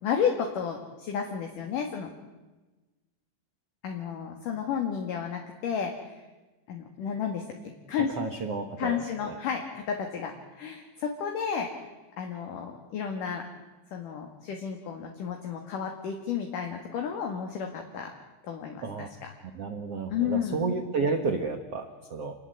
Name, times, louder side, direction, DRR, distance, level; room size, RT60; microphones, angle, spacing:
voice 1, 0.0-2.1 3.8-6.1 6.7-8.1 8.8-11.9 12.2-13.5 13.9-18.1 18.4-19.3 20.1-20.6, left 7 dB, 55° left, 3 dB, 3.0 m, -32 dB
voice 2, 8.2-9.0 9.2-9.3 18.8-19.1 19.5-22.3, right 4 dB, 75° right, 6 dB, 1.4 m, -31 dB
28.5 x 20.5 x 7.9 m, 1.2 s
omnidirectional pair, 5.3 m